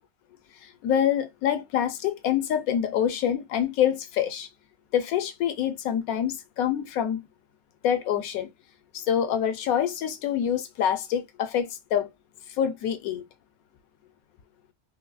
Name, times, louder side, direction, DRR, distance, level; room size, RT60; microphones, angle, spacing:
voice 1, 0.6-4.5 4.9-7.3 7.8-8.5 8.9-12.1 12.6-13.2, left 9 dB, 75° left, 1.1 m, -26 dB
4.6 x 2.0 x 2.3 m
omnidirectional pair, 1.5 m